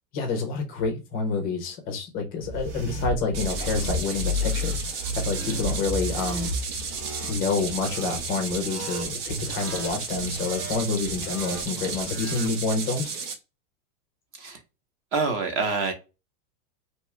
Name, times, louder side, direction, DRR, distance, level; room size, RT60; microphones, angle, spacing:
voice 1, 0.1-6.5 7.3-13.1, left 4 dB, 20° left, 0.5 m, -28 dB
sound 1, 2.4-12.5, left 1 dB, 65° right, 1.1 m, -33 dB
sound 2, 3.3-13.3, right 5 dB, 90° right, 1.0 m, -34 dB
voice 2, 15.1-15.9, right 4 dB, 30° right, 0.8 m, -26 dB
2.8 x 2.3 x 3.1 m
supercardioid pair, 160°, 45 cm